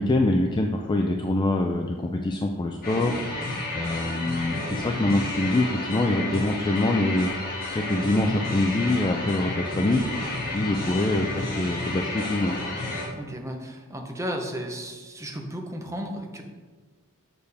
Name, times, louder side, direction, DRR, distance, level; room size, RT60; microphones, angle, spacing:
voice 1, 0.0-3.2 3.7-7.3 7.7-10.0 10.5-12.6, left 2 dB, 20° left, 2 dB, 0.4 m, -24 dB
sound 1, 2.8-13.1, left 2 dB, 45° left, 2.0 m, -31 dB
voice 2, 13.1-16.4, equal, 15° right, 3 dB, 0.8 m, -34 dB
6.8 x 6.7 x 3.4 m, 1.4 s
head